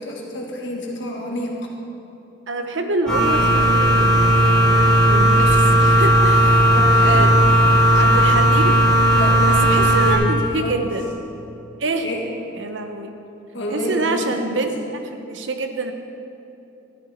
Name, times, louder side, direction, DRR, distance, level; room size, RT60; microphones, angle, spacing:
voice 1, 0.0-1.7 6.7-7.3 9.1-10.8 12.0-12.2 13.5-14.6, left 1 dB, 70° left, -1 dB, 1.8 m, -28 dB
voice 2, 2.5-6.6 7.0-7.3 8.0-8.8 9.5-11.1 11.8-12.1 12.5-13.1 13.7-14.8 15.0-15.9, right 2 dB, 75° right, 6 dB, 0.9 m, -26 dB
sound 1, 3.1-10.2, right 1 dB, 5° left, 2.8 m, -15 dB
13.5 x 9.6 x 4.3 m, 2.9 s
head